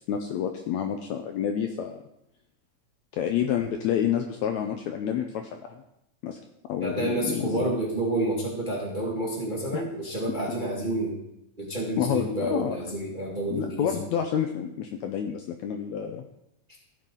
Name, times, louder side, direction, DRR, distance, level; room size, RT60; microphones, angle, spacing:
voice 1, 0.0-2.0 3.1-5.8 6.2-6.4 6.7-7.6 9.7-9.8 12.0-12.8 13.5-16.2, left 9 dB, 80° left, 5 dB, 1.7 m, -29 dB
voice 2, 6.8-11.2 11.6-14.0, right 1 dB, 25° right, -4 dB, 1.1 m, -29 dB
15.5 x 5.7 x 3.8 m, 0.83 s
omnidirectional pair, 3.8 m